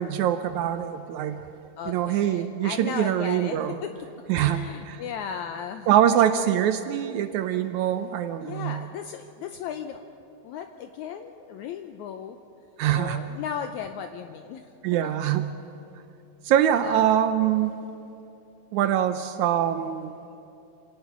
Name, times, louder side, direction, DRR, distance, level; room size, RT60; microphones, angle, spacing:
voice 1, 0.0-1.4 1.9-3.8 4.3-5.0 5.9-8.8 12.8-13.3 14.8-15.5 16.4-17.8 18.7-20.2, right 10 dB, 80° right, 10 dB, 1.8 m, -24 dB
voice 2, 1.8-5.9 8.4-10.0 10.4-12.4 12.9-15.2 16.8-17.1, left 8 dB, 80° left, 7 dB, 1.8 m, -36 dB
27.0 x 17.5 x 5.9 m, 2.7 s
omnidirectional pair, 3.9 m